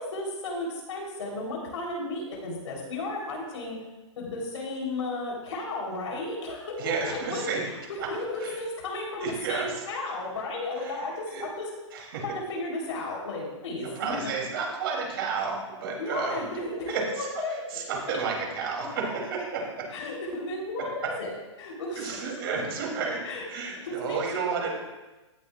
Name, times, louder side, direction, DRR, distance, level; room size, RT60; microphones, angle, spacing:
voice 1, 0.0-3.8 4.2-11.7 12.2-14.3 16.0-18.2 19.9-22.6 23.2-23.4 23.8-24.7, left 2 dB, 70° left, -2 dB, 3.5 m, -34 dB
voice 2, 6.8-7.6 8.0-8.1 8.4-8.6 9.2-9.8 10.8-11.0 11.3-11.4 11.9-12.2 14.0-16.4 16.9-17.3 17.7-19.9 22.0-23.2 23.5-24.7, right 5 dB, 45° right, -1 dB, 2.9 m, -31 dB
17.0 x 7.0 x 2.4 m, 1.1 s
hypercardioid pair, 170°, 16 cm